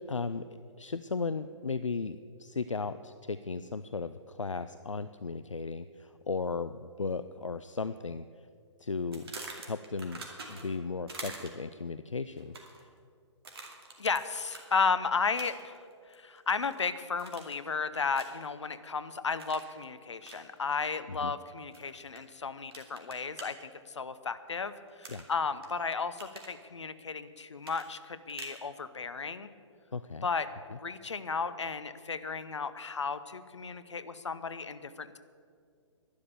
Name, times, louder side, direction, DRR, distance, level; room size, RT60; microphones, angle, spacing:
voice 1, 0.1-0.4 0.8-8.5 8.8-9.2 9.6-10.2 10.5-12.5 21.2-21.3 25.1-25.2 29.9-30.3, left 4 dB, 85° left, 12 dB, 0.4 m, -36 dB
sound 1, 9.1-10.8 11.1-11.7 12.4-12.8 13.4-14.2 14.5-14.7 15.4-15.8 16.1-16.8 17.2-17.7 18.1-18.5 19.4-19.7 20.2-20.4 21.7-22.2 22.7-23.5 25.0-25.7 26.0-26.6 27.6-28.6, right 3 dB, 55° right, 2.3 m, -45 dB
voice 2, 14.0-15.8 16.1-29.5 30.2-35.2, left 5 dB, 70° left, 13 dB, 0.8 m, -34 dB
11.5 x 11.0 x 6.8 m, 2.2 s
figure-of-eight pair, 125°, 16 cm